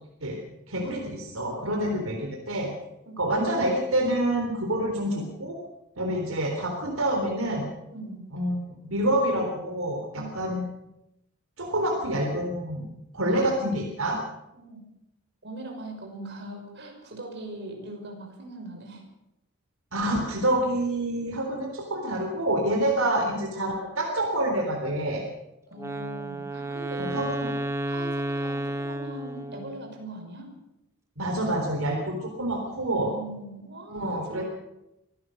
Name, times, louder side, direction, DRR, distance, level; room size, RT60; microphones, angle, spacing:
voice 1, 0.7-2.7 3.2-5.6 6.0-7.6 8.3-10.6 11.6-12.9 13.1-14.2 19.9-25.2 27.0-27.5 31.2-33.1 33.9-34.4, right 1 dB, 80° right, 2 dB, 3.8 m, -27 dB
voice 2, 1.6-2.1 3.1-3.2 6.0-6.2 7.9-8.3 10.1-10.3 11.8-11.9 13.3-13.5 14.5-14.8 15.4-19.1 23.2-23.3 25.7-27.5 27.8-30.5 32.6-34.4, right 2 dB, 55° right, 2 dB, 5.9 m, -41 dB
Wind instrument woodwind instrument, 25.8-29.9, right 1 dB, 15° right, 1.2 m, -32 dB
24.5 x 16.5 x 6.6 m, 0.88 s
head